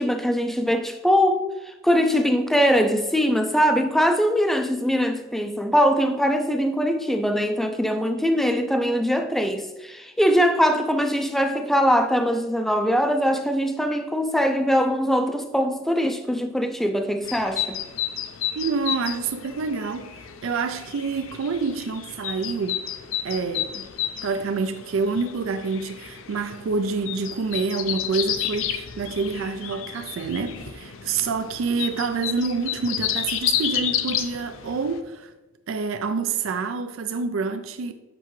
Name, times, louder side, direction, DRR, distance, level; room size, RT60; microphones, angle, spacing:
voice 1, 0.0-17.8, equal, ahead, 0.4 m, -22 dB
sound 1, 17.2-35.0, left 10 dB, 75° left, 0.5 m, -31 dB
voice 2, 18.5-22.8 23.2-23.9 24.2-35.3 35.7-37.9, right 4 dB, 75° right, 0.4 m, -27 dB
7.7 x 5.6 x 3.1 m
head